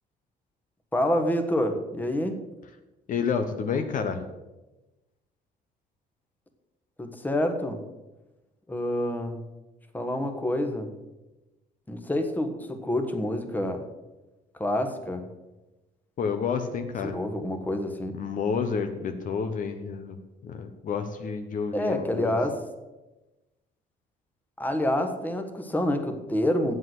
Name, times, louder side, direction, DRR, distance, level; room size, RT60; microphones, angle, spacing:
voice 1, 0.9-2.4 7.0-7.8 8.7-9.4 9.9-10.9 11.9-13.8 14.6-15.3 17.1-18.1 21.7-22.6 24.6-26.7, left 1 dB, 10° left, 6 dB, 1.3 m, -27 dB
voice 2, 3.1-4.2 16.2-17.2 18.1-20.2 20.4-22.3, left 6 dB, 50° left, 7 dB, 1.0 m, -29 dB
7.8 x 7.6 x 7.9 m, 1.1 s
cardioid pair, 110°, 17 cm